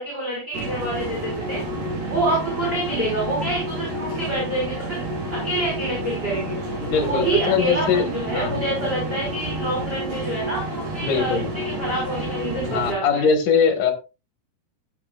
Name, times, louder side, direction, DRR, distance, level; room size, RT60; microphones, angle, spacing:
voice 1, 0.0-1.6 2.1-6.6 6.9-13.3, right 1 dB, 15° right, -3 dB, 5.9 m, -27 dB
sound 1, 0.5-12.9, right 1 dB, 65° right, 5.4 m, -29 dB
voice 2, 6.8-8.5 11.0-11.5 12.6-13.9, left 6 dB, 55° left, 5 dB, 2.8 m, -21 dB
15.5 x 10.0 x 2.5 m, 0.30 s
omnidirectional pair, 5.1 m